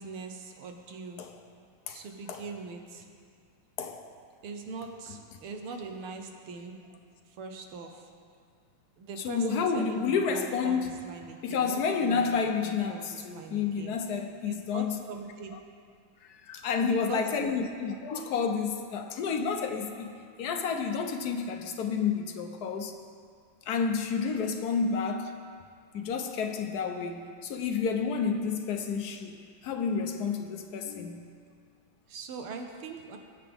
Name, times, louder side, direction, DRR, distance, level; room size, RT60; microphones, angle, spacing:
voice 1, 0.0-1.3 1.9-3.1 4.4-6.8 7.3-8.1 9.0-15.6 16.9-17.5 32.1-33.2, right 4 dB, 85° right, 4 dB, 1.9 m, -42 dB
voice 2, 9.2-10.9 11.4-15.0 16.2-22.9 23.7-25.4 25.9-29.3 29.6-31.4, left 5 dB, 60° left, 5 dB, 1.1 m, -30 dB
20.0 x 8.5 x 3.6 m, 2.2 s
omnidirectional pair, 2.3 m